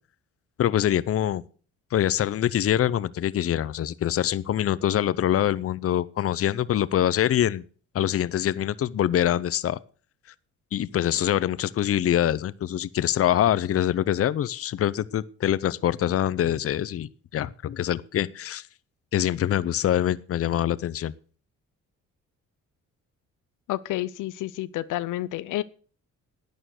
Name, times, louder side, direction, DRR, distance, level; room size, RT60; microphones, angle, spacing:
voice 1, 0.6-1.4 1.9-7.6 7.9-9.8 10.7-18.6 19.1-21.1, left 11 dB, 50° left, 0.7 m, -24 dB
voice 2, 23.7-25.6, left 15 dB, 85° left, 0.7 m, -30 dB
11.5 x 9.0 x 6.5 m
cardioid pair, 90°, 30 cm